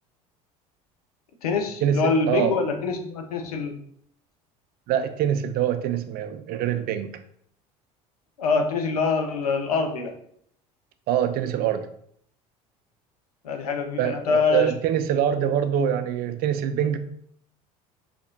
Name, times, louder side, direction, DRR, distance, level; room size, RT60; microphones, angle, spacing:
voice 1, 1.4-3.8 8.4-10.1 13.4-14.7, left 4 dB, 90° left, 5 dB, 0.6 m, -25 dB
voice 2, 4.9-7.1 11.1-11.9 14.0-17.0, right 9 dB, 55° right, 10 dB, 0.5 m, -24 dB
4.2 x 2.9 x 2.7 m, 0.65 s
hypercardioid pair, 70°, 19 cm